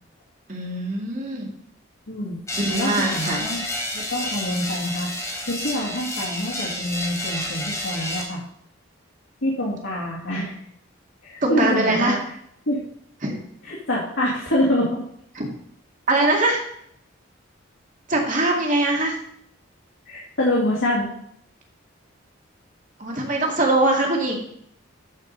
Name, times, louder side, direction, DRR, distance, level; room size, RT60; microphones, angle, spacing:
voice 1, 0.5-1.5 2.5-3.4 11.4-12.2 13.2-13.4 15.3-15.5 16.1-16.6 18.1-19.2 23.0-24.4, right 2 dB, 40° right, 0 dB, 2.2 m, -22 dB
voice 2, 2.1-2.4 2.7-3.6 3.9-5.1 5.4-8.4 9.4-10.5 11.2-12.2 12.7-12.8 13.6-15.1 20.1-21.1, left 1 dB, 65° left, -6 dB, 2.2 m, -25 dB
sound 1, 2.5-8.2, left 1 dB, 15° left, 1.9 m, -30 dB
13.0 x 5.0 x 5.3 m, 0.69 s
head